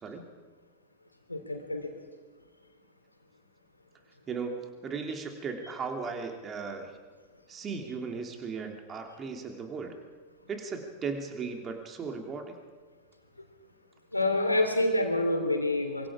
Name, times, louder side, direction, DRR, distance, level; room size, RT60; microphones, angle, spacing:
voice 1, 1.3-1.9 14.1-16.1, left 1 dB, 85° left, 4 dB, 3.4 m, -27 dB
voice 2, 4.3-6.9 7.5-10.0 10.5-12.6, right 5 dB, 25° right, 4 dB, 3.0 m, -37 dB
25.0 x 24.0 x 4.9 m, 1.4 s
figure-of-eight pair, 90°, 0 cm